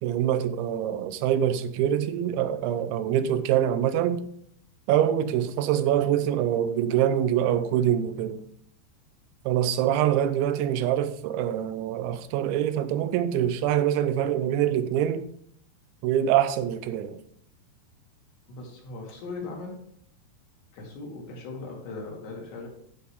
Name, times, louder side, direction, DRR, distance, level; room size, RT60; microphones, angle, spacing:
voice 1, 0.0-4.2 4.9-8.4 9.5-15.3 16.0-17.2, right 10 dB, 85° right, 3.1 m, -25 dB
voice 2, 18.5-19.8 20.7-22.7, left 3 dB, 65° left, 4.4 m, -38 dB
15.0 x 6.1 x 3.6 m
omnidirectional pair, 5.2 m